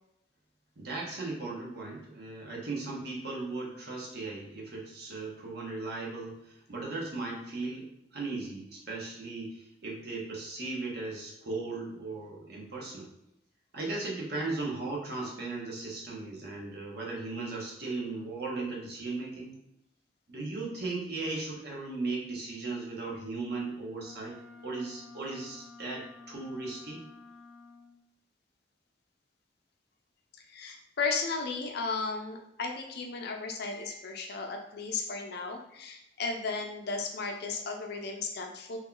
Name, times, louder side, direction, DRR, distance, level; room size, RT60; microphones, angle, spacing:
voice 1, 0.8-7.9 8.1-13.1 13.7-19.5 20.3-24.4 24.6-27.0, right 3 dB, 60° right, -2 dB, 0.9 m, -37 dB
Wind instrument woodwind instrument, 24.0-28.0, left 3 dB, ahead, 0.3 m, -52 dB
voice 2, 30.5-38.8, left 4 dB, 60° left, 3 dB, 0.5 m, -35 dB
3.0 x 2.3 x 3.7 m, 0.81 s
head